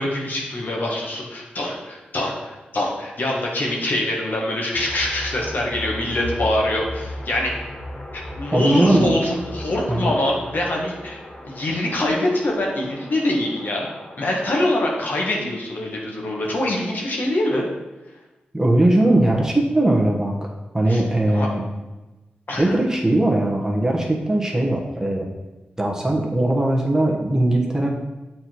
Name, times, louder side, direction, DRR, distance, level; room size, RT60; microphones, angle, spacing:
voice 1, 0.0-7.7 8.4-11.2 11.4-13.9 14.2-17.6 20.9-21.0 21.3-21.5 22.5-22.8, left 1 dB, 60° left, -1 dB, 1.7 m, -24 dB
sound 1, 4.7-14.6, left 1 dB, 30° left, 1.5 m, -36 dB
voice 2, 8.5-9.1 9.9-10.1 18.5-21.6 22.6-25.3 25.8-27.9, right 1 dB, 15° right, -1 dB, 1.3 m, -19 dB
7.6 x 4.3 x 4.7 m, 1.1 s
cardioid pair, 65°, 4 cm